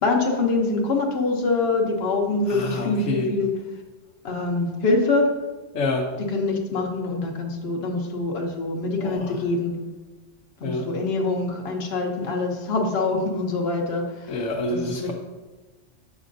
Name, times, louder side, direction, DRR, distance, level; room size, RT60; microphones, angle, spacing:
voice 1, 0.0-3.5 4.2-5.3 6.2-9.8 10.6-14.4 14.7-15.1, left 3 dB, 60° left, 1 dB, 1.1 m, -24 dB
voice 2, 2.5-3.3 5.7-6.1 9.0-9.4 10.6-10.9 14.3-15.1, left 2 dB, 85° left, 0 dB, 1.1 m, -27 dB
8.2 x 6.1 x 2.6 m, 1.2 s
omnidirectional pair, 1.2 m